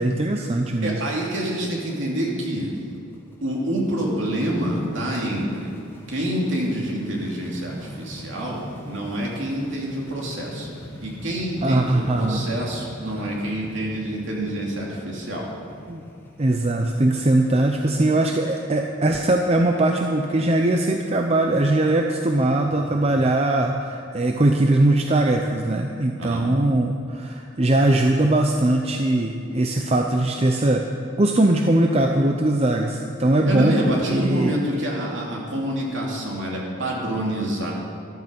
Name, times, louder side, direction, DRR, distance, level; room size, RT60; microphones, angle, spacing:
voice 1, 0.0-1.0 11.6-12.5 13.1-13.2 14.3-14.5 15.9-16.0 16.4-30.9 31.2-34.5, right 1 dB, 30° right, 3 dB, 0.6 m, -21 dB
voice 2, 0.8-2.7 3.4-5.7 6.1-10.7 11.0-15.4 26.2-26.4 33.5-37.7, right 1 dB, 60° right, -3 dB, 2.9 m, -27 dB
sound 1, 2.6-21.3, left 1 dB, 10° left, 1.2 m, -42 dB
14.0 x 12.0 x 5.3 m, 2.5 s
head